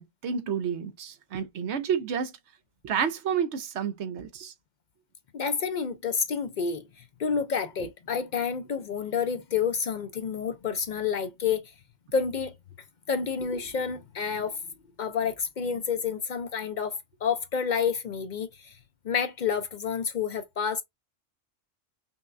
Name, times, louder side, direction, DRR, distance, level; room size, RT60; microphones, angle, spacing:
voice 1, 0.0-2.3 2.8-4.5, right 7 dB, 65° right, 0.9 m, -30 dB
voice 2, 5.3-11.6 12.1-12.5 13.1-14.6 15.0-18.8 19.0-20.8, left 6 dB, 65° left, 0.4 m, -29 dB
5.4 x 2.2 x 2.4 m
omnidirectional pair, 1.3 m